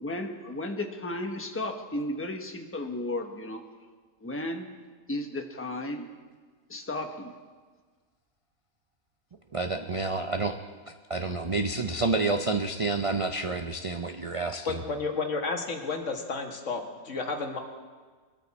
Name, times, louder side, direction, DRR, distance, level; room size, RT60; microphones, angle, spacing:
voice 1, 0.0-3.6 4.2-4.7 5.1-6.1 6.7-7.3, left 1 dB, 10° left, 4 dB, 1.0 m, -34 dB
voice 2, 9.5-10.6 11.1-14.8, right 3 dB, 50° right, 6 dB, 0.4 m, -29 dB
voice 3, 14.7-17.6, left 4 dB, 60° left, 4 dB, 1.8 m, -32 dB
21.0 x 13.0 x 4.2 m, 1.5 s
omnidirectional pair, 1.5 m